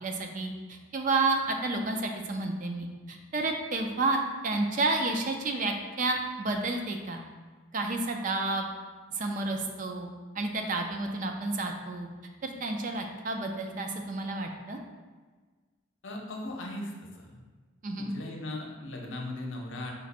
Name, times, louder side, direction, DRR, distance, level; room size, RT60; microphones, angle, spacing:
voice 1, 0.0-7.2 7.7-8.7 9.1-12.1 12.4-14.8 17.8-18.1, right 2 dB, 40° right, 3 dB, 0.4 m, -30 dB
voice 2, 16.0-17.4 18.0-19.9, left 1 dB, 65° left, 0 dB, 0.7 m, -38 dB
5.2 x 2.5 x 4.0 m, 1.4 s
head